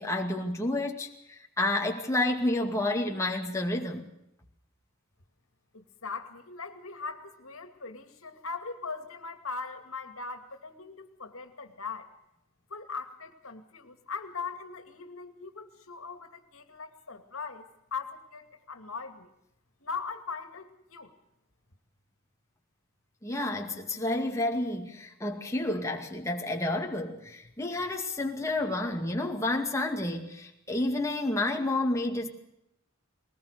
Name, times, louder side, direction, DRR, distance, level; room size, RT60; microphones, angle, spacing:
voice 1, 0.0-4.1 23.2-32.3, left 2 dB, 15° left, 1 dB, 2.2 m, -30 dB
voice 2, 5.7-12.1 12.7-19.3 19.8-21.1, left 4 dB, 80° left, 7 dB, 2.4 m, -40 dB
21.5 x 19.5 x 6.7 m, 0.81 s
head